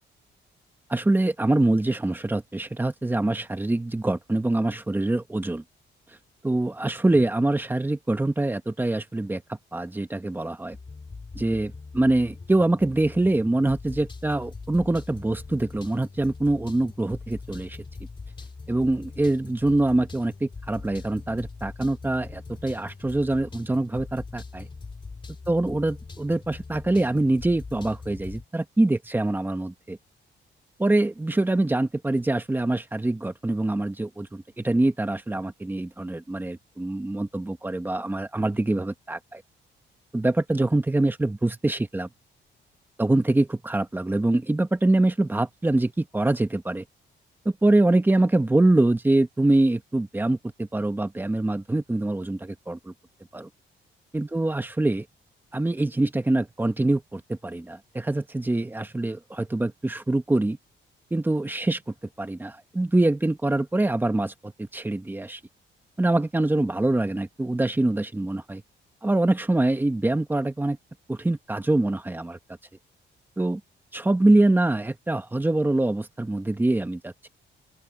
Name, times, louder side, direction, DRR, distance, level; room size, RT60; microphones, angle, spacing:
voice 1, 0.9-5.6 6.4-10.8 11.3-17.8 18.7-24.7 25.5-30.0 30.8-39.4 40.1-42.1 43.0-46.8 47.4-52.9 53.3-53.5 54.1-55.0 55.5-60.6 61.1-61.8 62.2-65.4 66.0-68.6 69.0-70.8 71.1-72.4 73.4-73.6 73.9-77.3, right 2 dB, 10° right, 1.3 m, -24 dB
sound 1, 10.7-28.5, left 4 dB, 25° left, 2.8 m, -42 dB
open air
cardioid pair, 145°, 20 cm